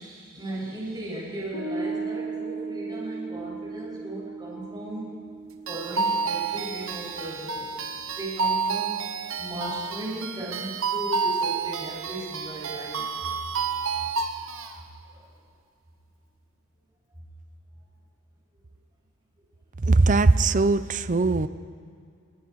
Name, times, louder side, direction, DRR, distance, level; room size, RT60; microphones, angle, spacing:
voice 1, 0.0-5.2 5.7-7.9 8.2-9.0 9.4-13.1 15.1-15.3, right 1 dB, 20° right, -5 dB, 7.4 m, -36 dB
Piano, 1.5-8.3, right 4 dB, 65° left, 2.9 m, -37 dB
sound 1, 5.7-14.7, right 5 dB, 65° right, 1.2 m, -30 dB
voice 2, 19.9-21.5, right 3 dB, 35° right, 14 dB, 0.6 m, -20 dB
29.0 x 21.5 x 4.7 m, 2.3 s
head